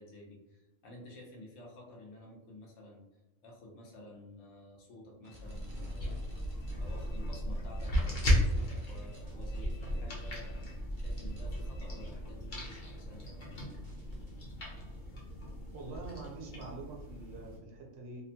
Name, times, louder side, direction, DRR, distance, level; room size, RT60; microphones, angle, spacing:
voice 1, 0.0-3.0 3.4-6.5 6.8-13.7, left 1 dB, 80° left, -1 dB, 1.1 m, -52 dB
sound 1, 5.2-14.3, left 1 dB, 40° right, 0.6 m, -52 dB
sound 2, 5.4-17.6, equal, 45° left, 0.7 m, -35 dB
voice 2, 15.7-18.2, right 3 dB, 65° right, -1 dB, 0.9 m, -45 dB
2.8 x 2.1 x 2.7 m, 0.95 s
omnidirectional pair, 1.3 m